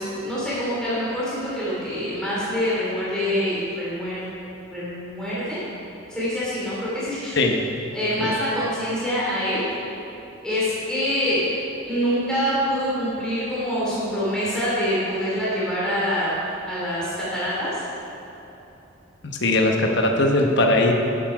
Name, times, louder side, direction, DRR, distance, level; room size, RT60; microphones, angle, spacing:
voice 1, 0.0-4.2 4.7-5.6 6.1-7.4 7.9-9.6 10.4-11.5 11.8-16.4 16.6-17.8, equal, 5° left, -9 dB, 2.7 m, -25 dB
voice 2, 19.4-20.9, left 2 dB, 55° left, 2 dB, 1.0 m, -19 dB
13.0 x 8.0 x 4.8 m, 2.9 s
head